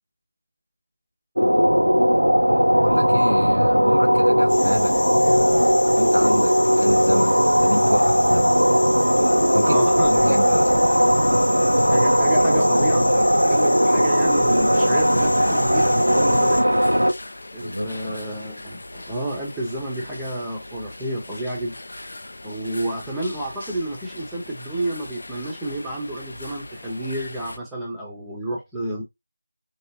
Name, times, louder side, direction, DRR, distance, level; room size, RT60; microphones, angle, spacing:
sound 1, 1.4-17.1, equal, 90° right, 0.4 m, -18 dB
voice 1, 2.8-4.9 5.3-8.6 9.5-9.8 10.1-10.7 17.6-18.2, equal, 90° left, 0.6 m, -28 dB
sound 2, 4.5-16.6, left 2 dB, 35° left, 0.8 m, -33 dB
voice 2, 9.6-10.8 11.9-16.6 17.5-21.8 22.4-29.0, right 1 dB, 5° right, 0.6 m, -30 dB
sound 3, 14.7-27.6, left 2 dB, 50° left, 0.4 m, -40 dB
3.3 x 2.8 x 2.7 m
figure-of-eight pair, 165°, 0 cm